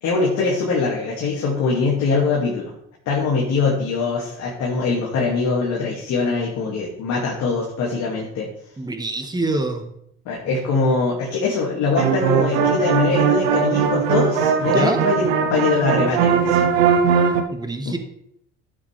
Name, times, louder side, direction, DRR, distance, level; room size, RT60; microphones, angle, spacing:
voice 1, 0.0-2.7 3.1-8.5 10.3-16.7 17.9-18.0, left 4 dB, 65° left, -3 dB, 2.4 m, -22 dB
voice 2, 8.8-9.8 10.5-10.6 14.6-15.0 17.5-18.0, right 2 dB, 15° right, 6 dB, 1.6 m, -25 dB
sound 1, 12.0-17.4, right 7 dB, 85° right, 1.0 m, -19 dB
12.5 x 7.6 x 3.5 m, 0.73 s
supercardioid pair, 75°, 30 cm